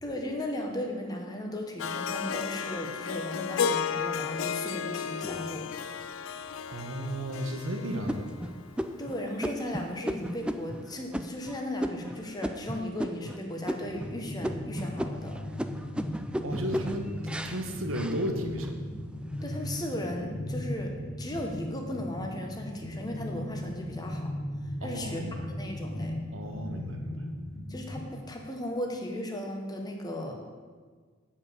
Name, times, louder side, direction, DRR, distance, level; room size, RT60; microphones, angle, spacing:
voice 1, 0.0-5.6 9.0-15.4 19.4-20.9 21.2-24.3 24.8-26.1 27.7-30.3, left 1 dB, 20° left, 2 dB, 1.2 m, -36 dB
Harp, 1.8-9.0, left 7 dB, 80° left, 0.4 m, -33 dB
sound 1, 5.2-6.1 6.7-6.8 7.3-7.6 8.1-13.4 13.7-14.2 14.4-18.8 19.2-19.8, equal, 5° right, 0.3 m, -36 dB
voice 2, 6.7-8.3 16.4-17.1 17.4-18.8 24.8-25.5 26.3-27.2, equal, 90° right, 4 dB, 1.2 m, -34 dB
sound 2, 13.7-28.1, left 1 dB, 50° left, 1.4 m, -38 dB
9.3 x 5.5 x 6.9 m, 1.6 s
head